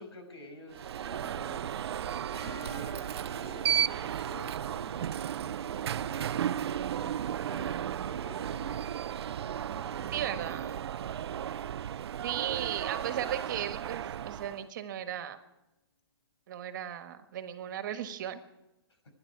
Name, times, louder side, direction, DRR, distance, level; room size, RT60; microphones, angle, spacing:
voice 1, 0.0-1.7 2.1-5.1 5.4-6.4 6.9-9.0 9.7-10.6, left 1 dB, 90° left, 5 dB, 5.8 m, -50 dB
Alarm, 0.7-14.7, right 9 dB, 75° right, 0.4 m, -34 dB
sound 1, 2.3-13.3, left 4 dB, 35° left, 3.5 m, -57 dB
voice 2, 10.1-10.9 12.2-15.4 16.5-18.4, right 10 dB, 50° right, 9 dB, 1.5 m, -36 dB
27.5 x 11.0 x 4.8 m, 0.98 s
hypercardioid pair, 160°, 14 cm